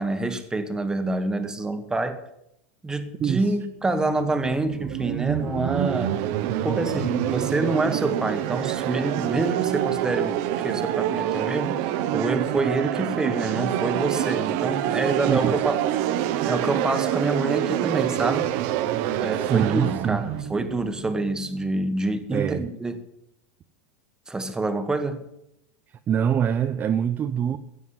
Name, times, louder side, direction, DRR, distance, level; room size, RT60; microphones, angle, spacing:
voice 1, 0.0-2.2 2.8-6.2 6.6-11.8 12.1-15.8 16.4-18.5 19.2-23.0 24.3-25.2, right 2 dB, 10° right, 1.4 m, -27 dB
voice 2, 3.2-3.6 15.3-15.7 19.4-20.2 22.3-22.7 25.9-27.6, right 8 dB, 25° right, 0.6 m, -24 dB
sound 1, 3.8-21.7, right 12 dB, 50° right, 1.0 m, -26 dB
16.0 x 7.2 x 9.9 m
supercardioid pair, 145°, 8 cm